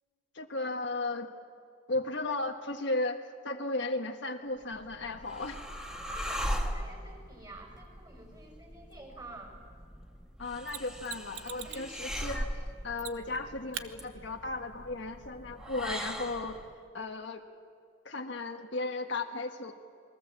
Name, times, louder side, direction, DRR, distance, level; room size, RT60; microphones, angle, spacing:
voice 1, 0.3-1.3 1.9-5.6 10.4-12.5 12.8-16.6 16.9-17.4 18.0-19.7, left 2 dB, 65° left, 4 dB, 1.5 m, -35 dB
sound 1, 4.6-16.7, equal, 5° right, 1.6 m, -40 dB
voice 2, 6.0-9.6 11.6-12.0 15.6-16.0, right 2 dB, 20° right, 2 dB, 6.5 m, -48 dB
Mechanisms, 10.7-11.9 13.0-13.4 13.7-13.9 16.6-16.7, right 10 dB, 80° right, 1.1 m, -41 dB
28.5 x 22.0 x 7.5 m, 2.3 s
head